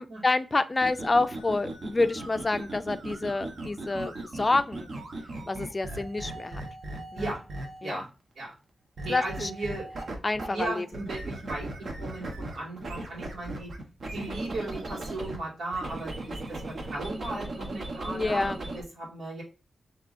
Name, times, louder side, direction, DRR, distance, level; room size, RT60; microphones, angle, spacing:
voice 1, 0.0-4.9 5.5-6.6 7.1-7.3 7.8-8.0 9.1-9.5 10.2-10.9 18.1-18.6, left 3 dB, 25° left, 12 dB, 0.4 m, -28 dB
sound 1, 0.7-7.9 9.0-10.6 10.9-15.4 15.7-18.8, right 2 dB, 60° right, 1.1 m, -38 dB
voice 2, 9.0-9.9 10.5-11.7 12.0-13.7 14.1-19.4, right 2 dB, 80° right, -4 dB, 2.2 m, -36 dB
6.8 x 3.0 x 2.6 m, 0.32 s
wide cardioid pair, 115°, 0 cm